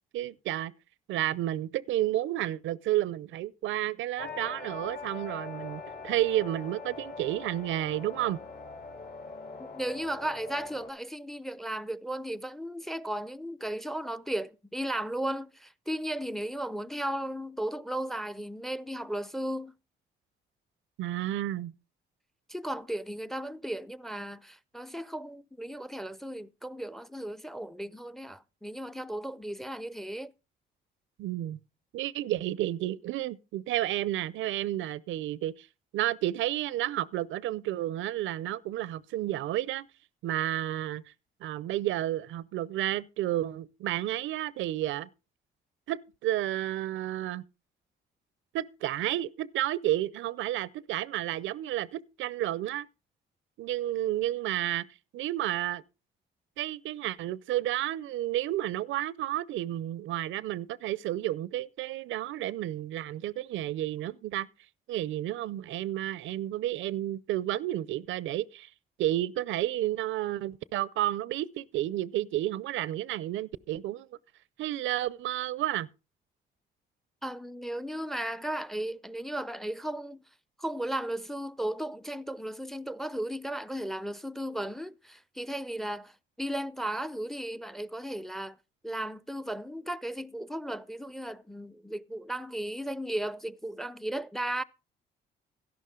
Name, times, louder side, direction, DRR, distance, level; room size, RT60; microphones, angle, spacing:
voice 1, 0.1-0.7 1.1-8.4 21.0-21.7 31.2-31.6 31.9-35.7 35.9-39.9 40.2-41.0 41.4-45.1 45.9-47.4 48.5-52.9 53.6-54.9 55.1-55.8 56.6-64.5 64.9-68.7 69.0-74.1 74.6-75.9, right 14 dB, 80° right, 0.5 m, -31 dB
sound 1, 4.2-10.9, left 4 dB, 55° left, 3.4 m, -42 dB
voice 2, 9.6-19.7 22.5-30.3 77.2-80.2 80.6-88.6 88.8-94.6, right 1 dB, ahead, 0.5 m, -35 dB
12.5 x 11.0 x 3.7 m
cardioid pair, 90°, 20 cm